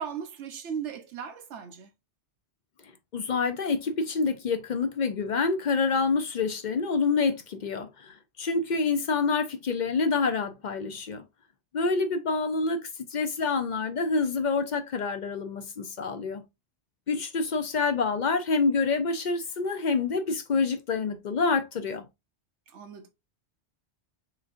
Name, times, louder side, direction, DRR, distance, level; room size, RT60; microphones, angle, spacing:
voice 1, 0.0-1.9 20.5-20.7 22.7-23.1, right 7 dB, 80° right, 1.1 m, -37 dB
voice 2, 3.1-11.2 11.7-16.4 17.1-22.1, left 4 dB, 55° left, 0.5 m, -27 dB
5.9 x 2.7 x 2.4 m
omnidirectional pair, 1.2 m